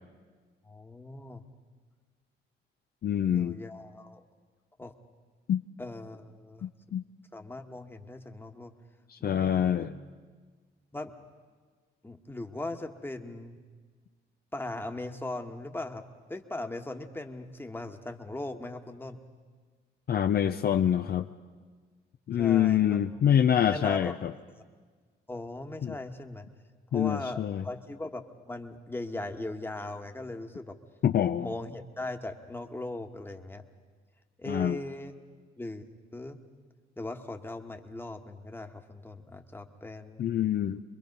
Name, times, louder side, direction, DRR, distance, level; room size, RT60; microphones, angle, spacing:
voice 1, 0.6-1.4 3.2-4.2 4.8-4.9 5.8-6.6 7.3-8.7 9.2-9.9 10.9-11.1 12.0-13.6 14.5-16.0 16.3-19.2 22.4-23.0 23.7-24.2 25.3-26.5 26.9-30.8 31.4-33.6 34.4-35.1 35.6-35.8 36.1-36.4 37.0-40.2, left 2 dB, 10° left, 5 dB, 1.4 m, -39 dB
voice 2, 3.0-3.6 5.5-5.6 6.6-7.0 9.1-9.9 20.1-21.3 22.3-24.3 25.8-26.0 26.9-27.6 31.0-31.5 34.5-34.8 40.2-40.8, left 9 dB, 50° left, 7 dB, 0.6 m, -26 dB
25.0 x 21.5 x 5.4 m, 1.5 s
cardioid pair, 90°, 20 cm